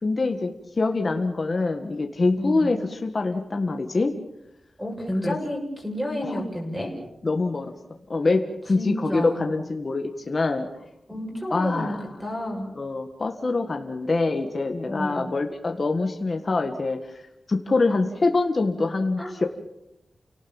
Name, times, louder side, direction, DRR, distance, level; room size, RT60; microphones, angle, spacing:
voice 1, 0.0-0.5 0.8-4.1 5.2-5.4 6.3-6.4 7.2-7.7 8.1-10.7 11.5-12.0 12.7-19.4, left 3 dB, 35° left, 4 dB, 1.7 m, -25 dB
voice 2, 2.4-2.7 4.8-6.9 8.7-9.5 11.1-11.9 12.2-12.7 14.8-15.3 19.2-19.3, equal, 5° right, 0 dB, 6.7 m, -30 dB
30.0 x 18.5 x 7.2 m, 0.84 s
wide cardioid pair, 160°, 0 cm